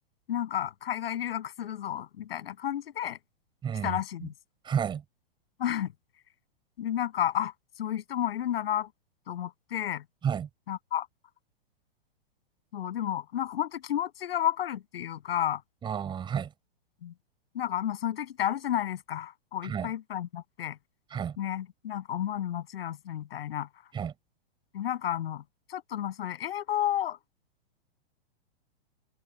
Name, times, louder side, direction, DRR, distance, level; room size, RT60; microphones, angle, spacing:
voice 1, 0.3-3.2 3.8-4.3 5.6-5.9 6.8-8.9 9.3-10.0 10.7-11.1 12.7-15.6 17.0-17.1 17.5-20.8 21.4-23.7 24.7-25.4 25.7-27.2, left 11 dB, 65° left, 7.6 m, -31 dB
voice 2, 3.6-4.0 4.7-5.0 10.2-10.5 15.8-16.5 19.6-19.9 21.1-21.3 23.9-24.1, right 8 dB, 15° right, 6.9 m, -31 dB
open air
hypercardioid pair, 155°, 32 cm